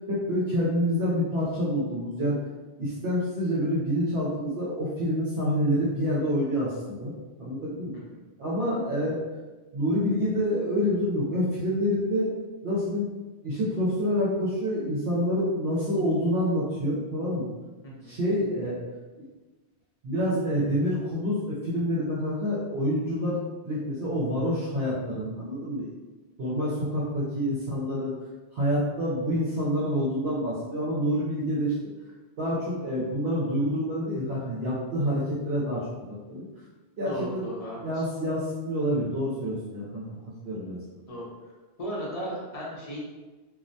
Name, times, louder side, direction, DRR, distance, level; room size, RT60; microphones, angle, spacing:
voice 1, 0.1-2.4 2.8-7.1 7.4-7.9 8.4-9.2 9.7-12.3 12.6-13.1 13.4-17.5 18.0-18.8 19.2-19.3 20.0-23.4 23.6-25.9 26.4-28.1 28.5-31.7 32.4-36.5 37.0-37.4 37.8-40.2 40.4-40.8, equal, 65° right, -8 dB, 0.8 m, -27 dB
voice 2, 37.0-38.0 41.1-41.3 41.8-43.0, equal, 40° left, -5 dB, 0.6 m, -36 dB
2.3 x 2.1 x 2.6 m, 1.2 s
omnidirectional pair, 1.2 m